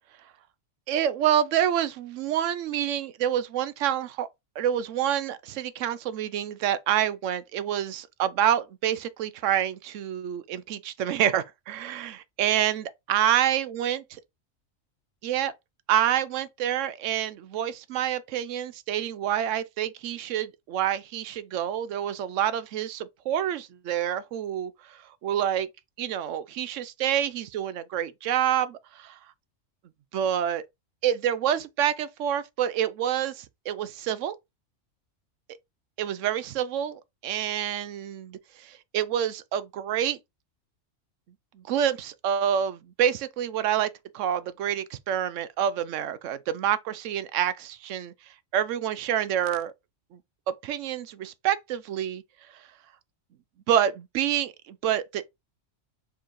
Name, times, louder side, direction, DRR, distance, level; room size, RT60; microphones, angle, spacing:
voice 1, 0.9-4.3 4.6-14.0 15.2-15.5 15.9-25.7 26.0-29.2 30.1-30.6 31.0-34.3 36.0-40.2 41.6-48.1 48.5-49.7 50.1-50.2 50.5-52.2 52.5-52.6 53.7-55.2, right 10 dB, 75° right, 0.9 m, -27 dB
4.7 x 3.7 x 3.0 m
omnidirectional pair, 1.3 m